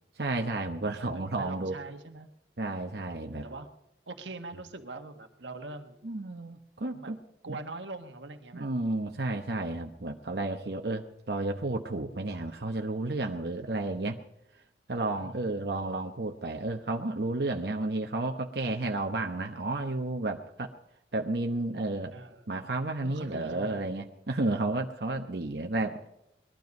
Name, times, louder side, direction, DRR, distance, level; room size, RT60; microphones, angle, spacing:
voice 1, 0.2-1.8 2.6-3.5 4.5-4.6 6.0-7.2 7.5-7.6 8.5-14.2 14.9-20.7 21.1-22.2 22.5-26.1, right 2 dB, 65° right, 3 dB, 1.0 m, -32 dB
voice 2, 0.9-2.3 3.3-3.7 4.1-6.0 6.9-7.1 7.4-8.7 15.2-15.6 22.1-22.6 23.0-23.9, right 3 dB, 90° right, 7 dB, 1.4 m, -43 dB
21.0 x 12.5 x 5.3 m, 0.84 s
head